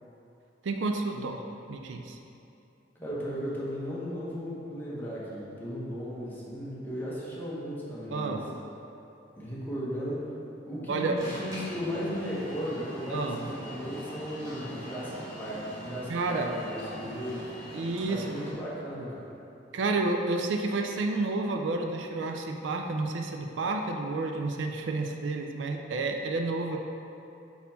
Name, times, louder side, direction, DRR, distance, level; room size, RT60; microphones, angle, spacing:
voice 1, 0.6-1.4 1.7-2.2 8.1-8.5 10.9-11.2 13.1-13.5 16.1-16.5 17.7-18.2 19.7-26.8, right 3 dB, 75° right, 3 dB, 0.4 m, -30 dB
voice 2, 2.9-8.4 9.3-10.3 10.7-17.5 18.1-19.3, equal, 10° left, -7 dB, 1.2 m, -36 dB
Alarm, 11.2-18.5, equal, 20° right, 1.4 m, -42 dB
4.2 x 4.2 x 5.6 m, 2.8 s
head